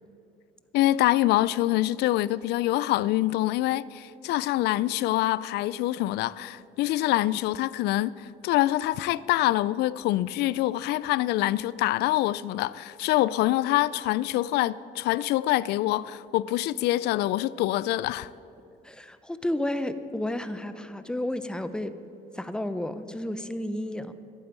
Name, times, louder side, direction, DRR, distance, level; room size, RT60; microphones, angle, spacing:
voice 1, 0.7-18.3, left 15 dB, 80° left, 0.4 m, -25 dB
voice 2, 18.8-22.0 22.3-24.1, left 1 dB, 5° left, 0.7 m, -32 dB
11.5 x 9.0 x 8.9 m
cardioid pair, 110°, 17 cm